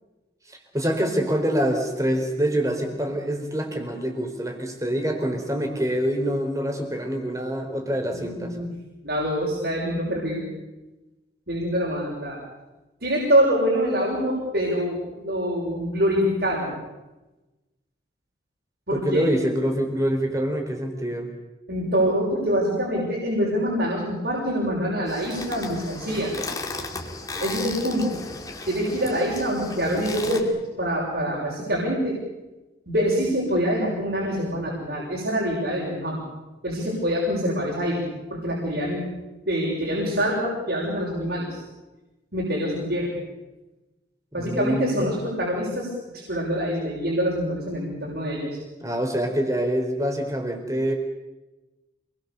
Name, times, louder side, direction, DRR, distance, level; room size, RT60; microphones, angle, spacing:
voice 1, 0.5-8.6 18.9-21.3 44.3-45.1 48.8-50.9, equal, 20° right, 4 dB, 4.1 m, -25 dB
voice 2, 8.1-8.7 9.0-10.5 11.5-12.4 13.0-16.7 18.9-19.3 21.7-26.4 27.4-28.2 28.7-32.2 32.9-36.2 36.6-39.0 39.5-41.6 42.3-43.1 44.3-48.6, equal, 65° right, -4 dB, 6.6 m, -25 dB
sound 1, 25.1-30.4, left 2 dB, 20° left, 2.7 m, -35 dB
27.5 x 21.5 x 7.0 m, 1.1 s
head